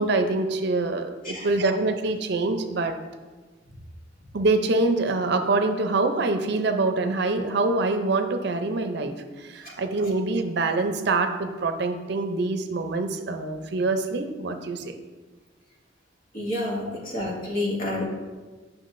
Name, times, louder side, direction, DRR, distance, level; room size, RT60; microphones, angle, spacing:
voice 1, 0.0-2.9 4.3-9.1 9.4-15.0, right 3 dB, 65° right, 6 dB, 0.6 m, -25 dB
voice 2, 16.3-18.1, left 1 dB, 50° left, -3 dB, 1.7 m, -29 dB
8.3 x 5.9 x 2.6 m, 1.3 s
head